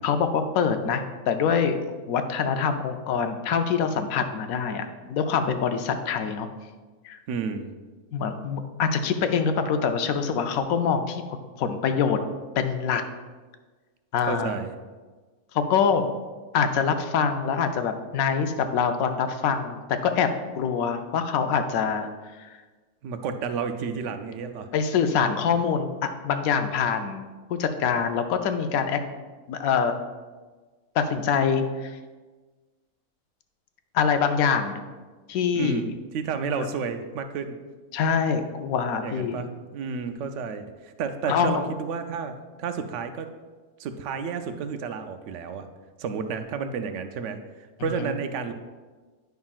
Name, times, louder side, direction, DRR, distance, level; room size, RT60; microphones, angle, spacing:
voice 1, 0.0-1.8 2.1-6.5 7.0-7.2 8.1-12.2 12.6-13.0 14.1-14.5 15.5-16.1 16.5-20.3 20.5-22.1 22.4-22.6 24.7-27.2 27.5-29.0 29.5-29.9 30.9-32.0 33.9-34.8 35.3-35.8 36.6-36.7 37.9-39.4 41.3-41.6 47.8-48.1, left 6 dB, 80° left, 7 dB, 1.0 m, -25 dB
voice 2, 7.3-7.7 14.3-14.7 23.0-24.7 35.5-37.6 39.0-43.3 43.8-45.7 46.0-48.5, right 5 dB, 65° right, 8 dB, 0.8 m, -31 dB
9.3 x 5.6 x 2.4 m, 1.4 s
omnidirectional pair, 1.5 m